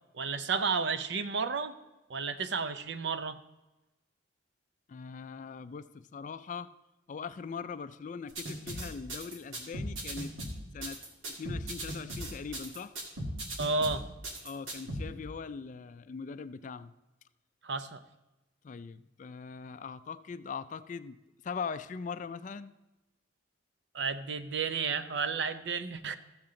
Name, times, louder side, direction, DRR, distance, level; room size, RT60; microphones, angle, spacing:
voice 1, 0.1-1.7 2.1-3.4 13.6-14.1 17.6-18.0 23.9-26.2, right 5 dB, 60° right, 11 dB, 0.6 m, -32 dB
voice 2, 4.9-6.7 7.1-10.3 10.7-11.0 11.2-12.9 14.4-16.9 18.6-21.2 21.4-22.7, left 5 dB, 40° left, 13 dB, 0.3 m, -41 dB
sound 1, 8.3-15.0, right 1 dB, 85° right, 2.0 m, -38 dB
14.0 x 7.3 x 3.8 m, 1.0 s
head